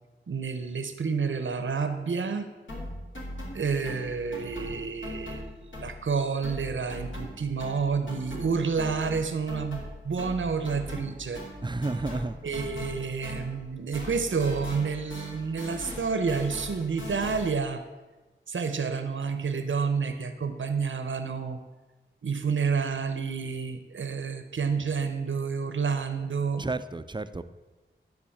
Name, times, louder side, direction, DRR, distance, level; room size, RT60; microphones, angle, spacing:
voice 1, 0.3-2.5 3.5-11.4 12.4-17.8 18.5-21.6 22.2-26.7, right 5 dB, 70° right, 8 dB, 0.8 m, -29 dB
sound 1, 2.7-6.2 6.4-13.7 13.9-17.7, left 1 dB, 65° left, 2.8 m, -40 dB
voice 2, 11.6-12.4 26.6-27.4, right 3 dB, 20° right, 12 dB, 0.5 m, -31 dB
10.5 x 4.0 x 7.2 m, 1.2 s
cardioid pair, 45°, 21 cm